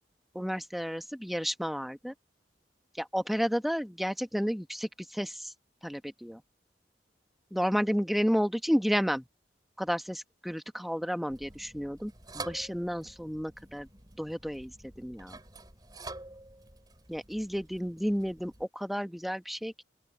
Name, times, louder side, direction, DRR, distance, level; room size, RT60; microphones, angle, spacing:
voice 1, 0.3-2.1 2.9-5.5 5.8-6.4 7.5-9.3 9.8-13.9 14.2-15.4 17.1-19.8, equal, ahead, 1.1 m, -31 dB
sound 1, 11.3-18.6, right 2 dB, 20° right, 4.3 m, -48 dB
open air
head